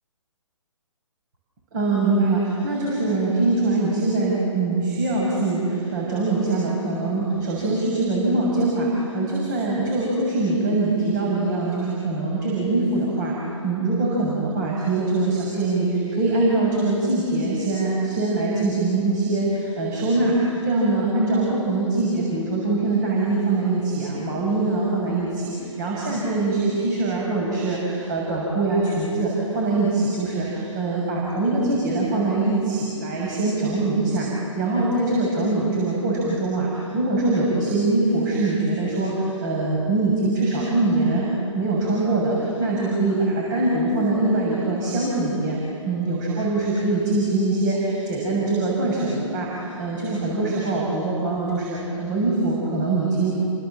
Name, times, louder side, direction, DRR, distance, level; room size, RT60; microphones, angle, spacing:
voice 1, 1.7-13.4 13.6-34.3 34.5-45.6 45.8-53.3, right 2 dB, 35° right, -3 dB, 6.9 m, -23 dB
30.0 x 26.0 x 7.5 m, 2.5 s
figure-of-eight pair, 135°, 17 cm